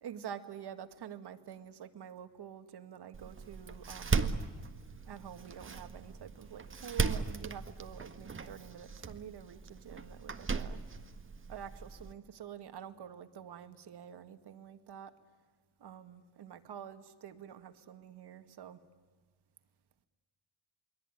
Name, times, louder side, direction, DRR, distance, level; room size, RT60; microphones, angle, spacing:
voice 1, 0.0-4.3 5.0-10.8 11.5-15.1 15.8-18.8, right 9 dB, 60° right, 8 dB, 2.1 m, -47 dB
Door, 3.1-12.1, right 4 dB, 25° right, 1.7 m, -37 dB
28.5 x 21.5 x 9.3 m, 1.4 s
cardioid pair, 95°, 45 cm